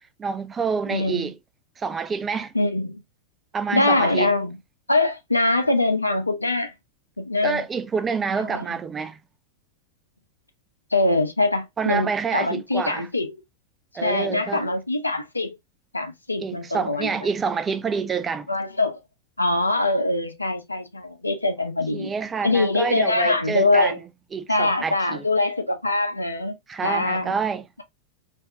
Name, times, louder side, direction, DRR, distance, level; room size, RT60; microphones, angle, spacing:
voice 1, 0.2-1.3 1.8-2.5 3.5-4.3 7.4-9.2 11.8-13.1 13.9-14.6 16.4-18.5 21.9-23.9 24.3-25.2 26.7-27.7, right 5 dB, 20° right, 0.4 m, -27 dB
voice 2, 0.9-1.3 2.5-3.0 3.7-4.6 4.9-6.7 7.2-7.6 8.4-8.7 10.9-13.4 14.0-15.6 15.9-17.1 18.5-19.0 19.4-22.1 22.4-24.0 24.5-26.6 26.8-27.3, left 2 dB, 85° left, 0.6 m, -23 dB
3.5 x 2.6 x 2.4 m
figure-of-eight pair, 90°, 0 cm